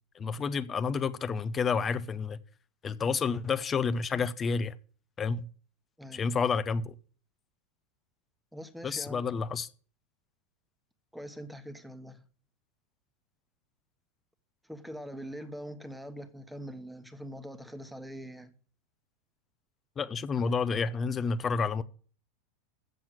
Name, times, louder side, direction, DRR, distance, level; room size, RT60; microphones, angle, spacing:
voice 1, 0.1-2.4 2.8-4.7 5.2-5.5 6.1-6.9 8.8-9.7 20.0-21.8, left 5 dB, 25° left, 0.7 m, -30 dB
voice 2, 6.0-6.3 8.5-9.5 11.1-12.2 14.7-18.5, equal, ahead, 1.3 m, -43 dB
7.8 x 7.2 x 7.8 m
hypercardioid pair, 90°, 0 cm